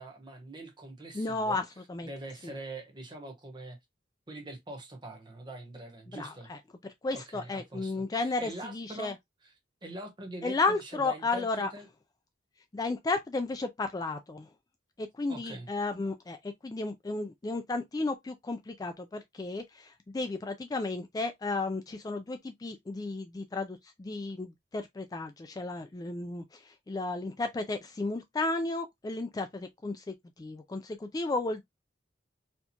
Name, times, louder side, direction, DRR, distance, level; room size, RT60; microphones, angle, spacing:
voice 1, 0.0-1.6 2.0-3.8 4.3-6.5 7.1-9.1 9.8-11.9 15.3-15.7, right 1 dB, 25° right, 1.1 m, -43 dB
voice 2, 1.1-2.1 2.4-2.5 6.1-9.1 10.4-11.7 12.7-14.5 15.0-31.6, left 3 dB, 20° left, 0.3 m, -33 dB
4.3 x 2.3 x 2.8 m
head